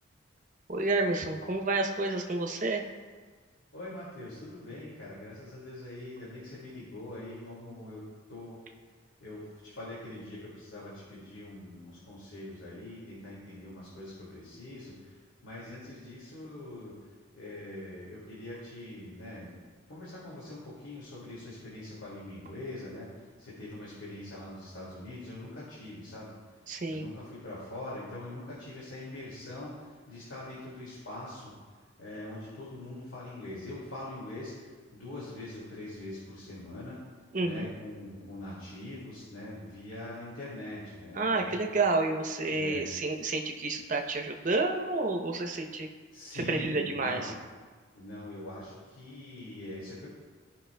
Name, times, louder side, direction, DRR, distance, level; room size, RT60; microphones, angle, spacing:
voice 1, 0.7-2.8 26.7-27.0 37.3-37.7 41.1-45.9 46.3-47.3, right 3 dB, 40° right, 3 dB, 0.7 m, -30 dB
voice 2, 3.7-8.0 8.3-8.6 9.2-17.0 17.3-19.5 19.9-26.6 26.9-31.5 32.0-37.0 37.4-41.7 42.5-42.8 46.1-47.4 47.9-50.1, left 1 dB, 70° left, -8 dB, 2.2 m, -43 dB
16.0 x 5.4 x 2.2 m, 1.5 s
head